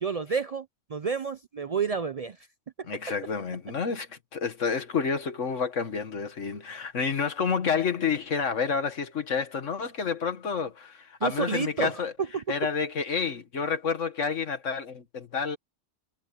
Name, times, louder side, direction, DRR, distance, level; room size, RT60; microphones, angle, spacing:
voice 1, 0.0-2.5 2.8-2.9 11.2-12.0 12.3-12.4, right 5 dB, 50° right, 0.4 m, -30 dB
voice 2, 2.9-12.1 12.5-15.6, left 6 dB, 85° left, 1.8 m, -29 dB
omnidirectional pair, 1.2 m